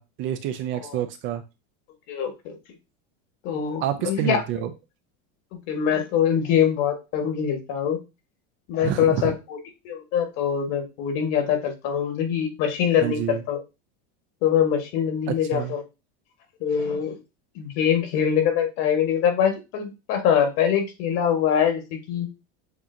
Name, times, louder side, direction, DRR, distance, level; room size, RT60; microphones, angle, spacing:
voice 1, 0.0-1.4 3.8-4.7 8.8-9.3 13.0-13.4 15.3-15.8, right 11 dB, 35° right, 9 dB, 0.4 m, -28 dB
voice 2, 2.1-2.5 3.4-4.4 5.5-8.0 8.7-9.6 9.8-13.6 14.4-15.8 16.6-17.2 17.5-22.3, left 8 dB, 50° left, 5 dB, 1.4 m, -23 dB
7.3 x 2.8 x 2.6 m, 0.26 s
supercardioid pair, 160°, 33 cm